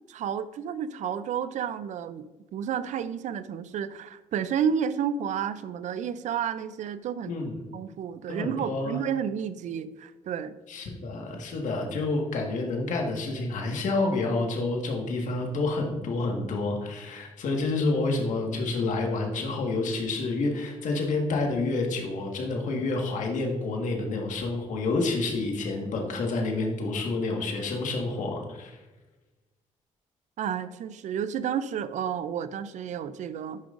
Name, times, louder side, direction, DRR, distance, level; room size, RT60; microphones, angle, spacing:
voice 1, 0.1-7.4 7.7-10.5 30.4-33.6, right 8 dB, 65° right, 13 dB, 0.4 m, -31 dB
voice 2, 8.3-9.0 10.7-28.8, left 3 dB, 70° left, 1 dB, 1.6 m, -29 dB
10.5 x 5.2 x 2.5 m, 1.1 s
cardioid pair, 75°, 13 cm